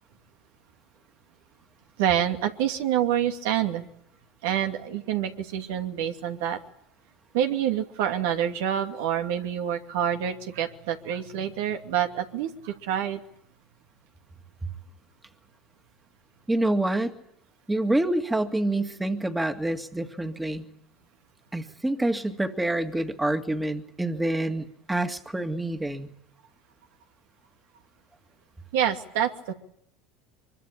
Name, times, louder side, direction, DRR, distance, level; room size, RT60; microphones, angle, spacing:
voice 1, 2.0-3.8 4.4-6.6 7.3-13.2 28.7-29.5, right 10 dB, 80° right, 4 dB, 2.6 m, -27 dB
voice 2, 16.5-17.2 17.7-20.7 21.5-26.1, right 1 dB, 10° right, 6 dB, 2.1 m, -27 dB
24.0 x 23.0 x 8.8 m, 0.73 s
supercardioid pair, 100°, 0 cm